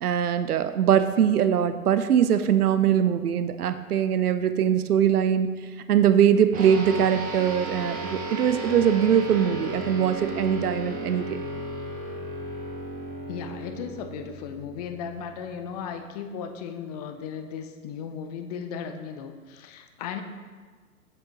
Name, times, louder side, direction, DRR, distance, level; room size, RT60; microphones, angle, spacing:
voice 1, 0.0-11.4, right 9 dB, 80° right, 11 dB, 0.6 m, -22 dB
sound 1, 6.5-16.2, right 1 dB, 20° right, 1.3 m, -35 dB
voice 2, 13.3-20.2, left 7 dB, 30° left, 7 dB, 0.5 m, -36 dB
7.7 x 7.5 x 2.9 m, 1.5 s
figure-of-eight pair, 110°, 45 cm